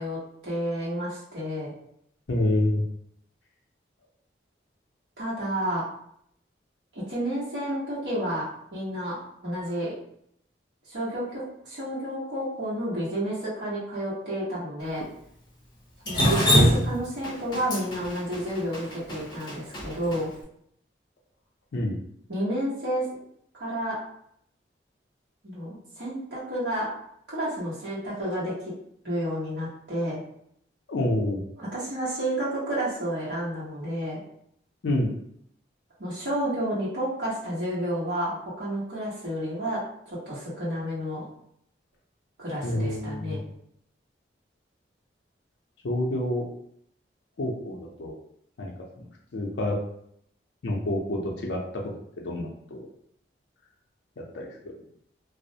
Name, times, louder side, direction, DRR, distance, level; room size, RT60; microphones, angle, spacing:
voice 1, 0.0-1.7 5.2-5.8 6.9-9.9 10.9-15.0 16.0-20.3 22.3-23.1 23.5-24.0 25.4-26.9 27.3-28.7 29.0-30.2 31.6-34.2 36.0-39.8 40.1-41.2 42.4-43.4, right 1 dB, 70° right, -9 dB, 1.0 m, -30 dB
voice 2, 2.3-2.8 16.2-16.3 21.7-22.0 30.9-31.4 34.8-35.1 42.6-43.4 45.8-46.4 47.4-48.1 48.6-49.0 49.3-49.8 50.6-51.6 52.2-52.8 54.3-54.7, left 1 dB, 80° left, -1 dB, 0.5 m, -28 dB
Drip, 16.1-20.2, equal, 25° left, 0.6 m, -23 dB
2.3 x 2.0 x 2.7 m, 0.69 s
head